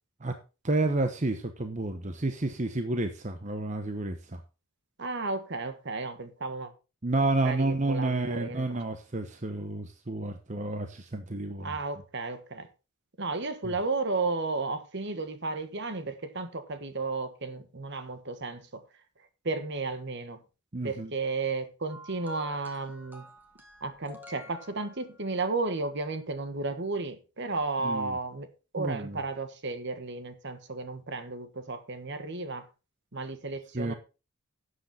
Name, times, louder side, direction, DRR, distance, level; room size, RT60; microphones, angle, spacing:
voice 1, 0.6-4.4 7.0-11.7 13.6-13.7 20.7-21.1 27.8-28.2 28.8-29.2 33.7-33.9, right 2 dB, 35° right, 0.9 m, -30 dB
voice 2, 5.0-6.7 7.4-8.8 11.6-12.7 13.2-18.8 19.4-20.4 20.8-23.3 23.8-28.5 28.7-32.7 33.1-33.9, right 3 dB, 50° right, 1.4 m, -33 dB
sound 1, 21.9-25.4 26.5-26.6, left 1 dB, 10° right, 1.8 m, -50 dB
12.0 x 8.0 x 4.2 m
head